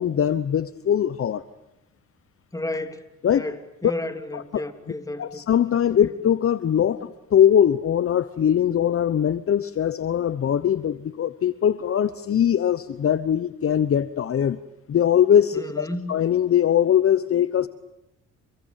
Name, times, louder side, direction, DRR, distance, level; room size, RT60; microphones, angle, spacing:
voice 1, 0.0-1.4 3.2-3.4 3.8-3.9 4.3-4.6 5.2-14.6 14.9-17.7, left 9 dB, 45° left, 14 dB, 1.0 m, -21 dB
voice 2, 2.5-3.0 3.3-5.4 15.5-16.1, left 1 dB, 10° left, 7 dB, 3.2 m, -32 dB
29.5 x 21.5 x 9.3 m, 0.90 s
cardioid pair, 90°, 30 cm